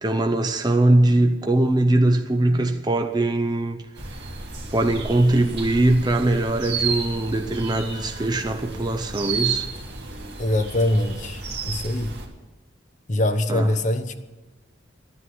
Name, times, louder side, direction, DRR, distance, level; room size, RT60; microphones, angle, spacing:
voice 1, 0.0-3.8 4.7-9.7 13.5-13.7, right 2 dB, 20° right, 5 dB, 0.7 m, -21 dB
sound 1, 4.0-12.3, right 4 dB, 60° right, 2.5 m, -32 dB
voice 2, 10.4-12.1 13.1-14.2, left 1 dB, 40° left, 8 dB, 1.0 m, -23 dB
12.5 x 9.7 x 7.8 m, 1.2 s
head